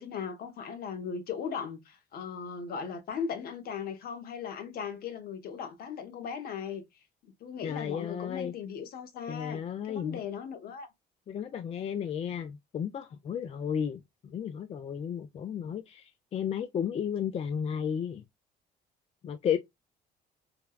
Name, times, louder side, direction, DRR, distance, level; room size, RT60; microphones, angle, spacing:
voice 1, 0.0-6.9 7.2-10.9, left 6 dB, 60° left, 0.9 m, -38 dB
voice 2, 7.6-8.5 9.3-10.2 11.3-18.2 19.2-19.6, left 8 dB, 35° left, 0.4 m, -33 dB
3.3 x 2.2 x 2.2 m
cardioid pair, 110°, 17 cm